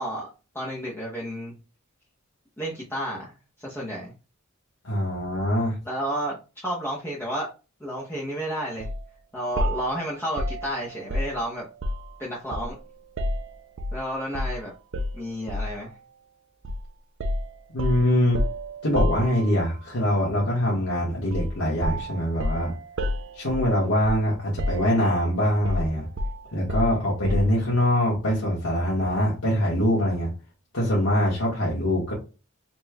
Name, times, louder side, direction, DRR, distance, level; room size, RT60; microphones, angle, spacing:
voice 1, 0.0-1.5 2.6-4.1 5.8-7.5 7.8-8.9 9.3-11.7 12.2-12.8 13.9-14.7 15.1-15.9, equal, 10° left, -6 dB, 0.9 m, -31 dB
voice 2, 4.8-5.8 17.7-18.4 18.8-22.7 23.4-26.1 26.5-30.3 30.7-32.1, equal, 80° left, -5 dB, 1.5 m, -23 dB
sound 1, 8.8-9.0 9.6-12.2 12.5-14.0 14.3-14.6 14.9-15.8 16.6-16.8 17.2-19.8 21.3-21.6 21.8-24.3 24.6-25.2 25.6-27.6, left 1 dB, 60° right, 0.5 m, -30 dB
4.2 x 3.1 x 2.3 m, 0.31 s
head